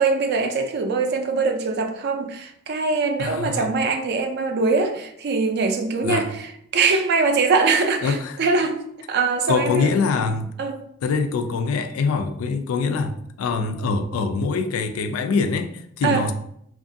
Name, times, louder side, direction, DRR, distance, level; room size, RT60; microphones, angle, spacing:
voice 1, 0.0-8.8 9.1-9.9 10.6-10.8 16.0-16.3, right 4 dB, 55° right, 0.4 m, -22 dB
voice 2, 3.2-3.7 6.0-6.3 8.0-8.4 9.5-10.5 11.0-16.3, left 4 dB, 85° left, 0.3 m, -24 dB
2.8 x 2.4 x 2.6 m
head